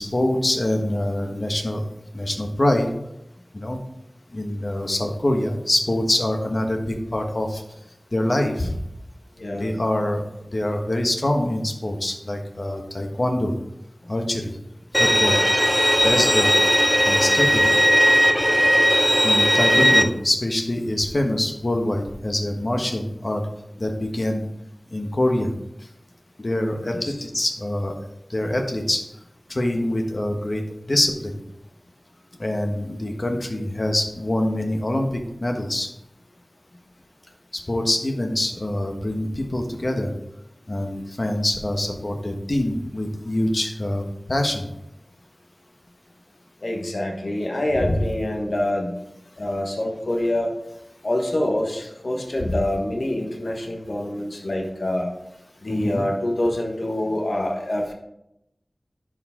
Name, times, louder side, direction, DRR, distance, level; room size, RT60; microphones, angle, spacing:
voice 1, 0.0-1.8 2.1-2.9 3.5-3.8 4.3-7.6 8.1-8.7 9.6-10.2 10.5-13.5 14.1-14.5 15.0-15.4 16.0-16.5 17.0-17.7 19.2-23.4 23.8-24.4 24.9-25.5 26.4-27.9 28.3-29.0 29.5-30.6 30.9-31.4 32.4-35.9 37.7-40.1 40.7-44.0 44.3-44.7 47.8-48.0 55.7-56.0, left 1 dB, 50° left, 3 dB, 1.2 m, -24 dB
voice 2, 9.4-9.7 26.9-27.1 46.6-49.0 49.4-50.5 51.0-55.1 55.6-57.9, left 1 dB, 70° left, 0 dB, 1.4 m, -26 dB
Bowed string instrument, 14.9-20.0, equal, 5° left, 0.7 m, -17 dB
10.5 x 5.0 x 3.7 m, 0.83 s
wide cardioid pair, 55°, 0 cm